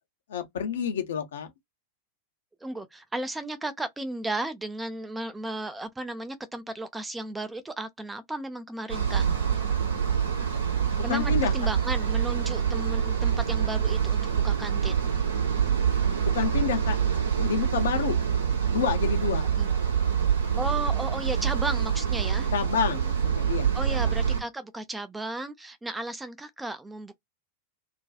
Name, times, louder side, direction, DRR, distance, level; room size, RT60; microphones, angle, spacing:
voice 1, 0.3-1.5 11.1-11.5 16.2-18.2 18.7-19.4 22.5-24.1, left 7 dB, 60° left, 0.6 m, -29 dB
voice 2, 2.6-9.3 11.0-15.0 19.6-19.7 20.6-22.5 23.7-27.2, right 2 dB, 10° right, 0.4 m, -34 dB
sound 1, 8.9-24.4, right 8 dB, 70° right, 0.8 m, -26 dB
2.4 x 2.3 x 2.2 m
figure-of-eight pair, 90°, 0 cm